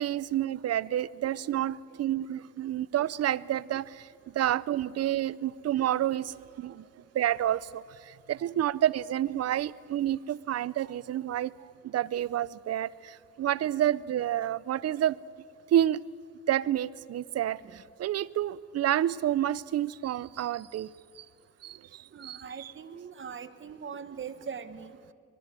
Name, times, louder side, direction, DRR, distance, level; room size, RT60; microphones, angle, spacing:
voice 1, 0.0-6.8 7.1-11.5 11.8-15.2 15.7-16.1 16.5-20.9 21.2-21.3 21.6-22.7, right 12 dB, 55° right, 20 dB, 0.6 m, -29 dB
voice 2, 22.1-24.9, right 6 dB, 40° right, 12 dB, 1.4 m, -41 dB
22.5 x 22.0 x 7.7 m, 2.3 s
cardioid pair, 90°, 30 cm